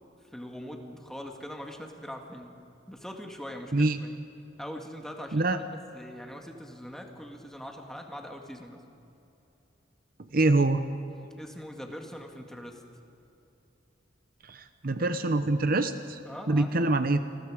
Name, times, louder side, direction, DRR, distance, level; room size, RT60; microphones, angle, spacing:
voice 1, 0.3-2.5 2.9-4.1 4.6-8.8 10.4-10.5 11.4-12.8 16.2-16.9, equal, 5° left, 2 dB, 2.0 m, -42 dB
voice 2, 10.3-10.8 14.5-16.2 16.5-17.2, right 2 dB, 55° right, 10 dB, 0.9 m, -25 dB
29.0 x 21.0 x 5.1 m, 3.0 s
head